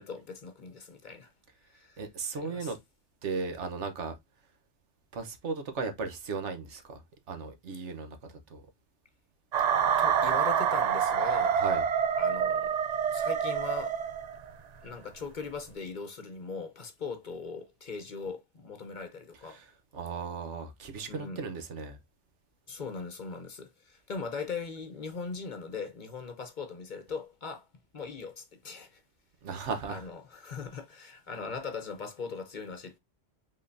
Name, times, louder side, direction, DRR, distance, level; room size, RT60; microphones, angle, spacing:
voice 1, 0.0-1.3 1.7-2.0 2.3-2.7 10.0-11.6 12.2-12.8 13.1-14.0 14.8-19.6 21.0-21.4 22.7-27.7 27.9-29.0 29.9-33.0, left 5 dB, 45° left, 0.9 m, -40 dB
voice 2, 2.0-2.8 3.2-4.1 5.1-8.6 11.5-11.8 19.4-22.0 29.4-30.1, right 4 dB, 80° right, 1.3 m, -36 dB
sound 1, 9.5-14.5, right 7 dB, 50° right, 0.5 m, -27 dB
5.5 x 3.7 x 2.5 m
omnidirectional pair, 1.2 m